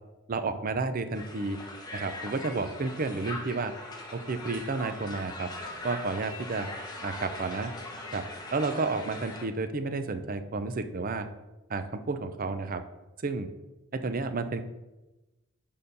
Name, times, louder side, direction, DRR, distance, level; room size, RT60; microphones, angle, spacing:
voice 1, 0.3-1.6 1.9-3.7 4.1-5.5 5.8-6.7 7.0-7.7 8.1-8.2 8.5-11.3 11.7-12.8 13.2-13.5 13.9-14.6, right 3 dB, 40° right, 10 dB, 0.5 m, -31 dB
Crowd, 1.1-9.5, left 2 dB, 20° left, 1.0 m, -41 dB
6.6 x 5.4 x 5.3 m, 1.1 s
head